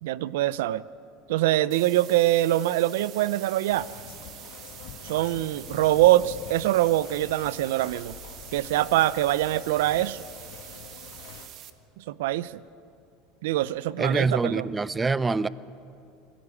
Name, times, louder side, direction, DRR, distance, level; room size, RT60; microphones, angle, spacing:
voice 1, 0.0-0.8 1.3-3.9 5.0-8.2 8.5-10.2 12.0-12.5 13.4-14.7, right 15 dB, 80° right, 18 dB, 0.5 m, -24 dB
sound 1, 1.7-11.7, right 11 dB, 50° right, 1.2 m, -45 dB
sound 2, 3.7-11.5, left 9 dB, 70° left, 1.9 m, -46 dB
voice 2, 14.0-15.5, right 4 dB, 15° right, 18 dB, 0.5 m, -25 dB
21.0 x 16.5 x 8.4 m, 2.6 s
supercardioid pair, 115°, 0 cm